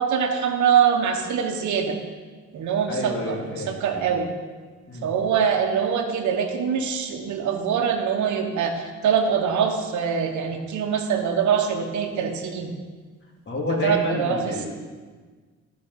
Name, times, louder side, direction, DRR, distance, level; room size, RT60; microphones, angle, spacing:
voice 1, 0.0-2.0 2.5-4.3 5.0-12.7 13.8-14.7, right 7 dB, 70° right, 3 dB, 1.1 m, -23 dB
voice 2, 2.9-4.1 4.9-5.1 13.5-14.7, left 2 dB, 40° left, -2 dB, 2.4 m, -29 dB
12.0 x 5.3 x 5.5 m, 1.4 s
cardioid pair, 90°, 30 cm